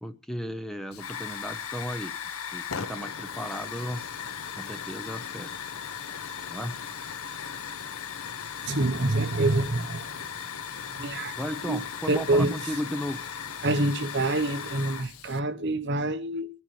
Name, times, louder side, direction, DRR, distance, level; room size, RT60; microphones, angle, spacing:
voice 1, 0.0-2.2 2.5-4.1 4.6-5.5 6.5-6.9 11.4-13.3, equal, ahead, 0.7 m, -35 dB
Hiss / Fire, 0.9-15.4, left 7 dB, 75° left, 0.8 m, -37 dB
voice 2, 8.6-10.1 11.0-11.3 11.6-11.8 12.1-12.6 13.6-16.5, right 2 dB, 50° right, 0.9 m, -26 dB
24.5 x 10.5 x 3.2 m
head